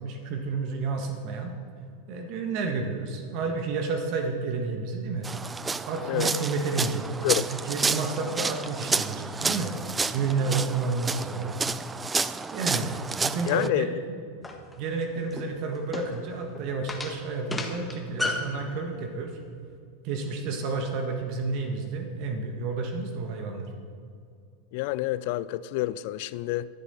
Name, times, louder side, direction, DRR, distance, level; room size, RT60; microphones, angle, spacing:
voice 1, 0.0-1.5 2.1-5.3 5.9-9.7 10.1-11.6 12.5-12.9 13.2-14.2 14.8-19.4 20.0-23.7, right 4 dB, 50° right, 1.5 m, -30 dB
sound 1, 5.2-13.7, right 4 dB, 15° right, 0.4 m, -30 dB
voice 2, 13.5-13.9 24.7-26.7, left 16 dB, 55° left, 0.4 m, -28 dB
sound 2, 14.4-18.6, left 2 dB, 10° left, 1.6 m, -34 dB
23.5 x 7.9 x 4.2 m
figure-of-eight pair, 90°, 0 cm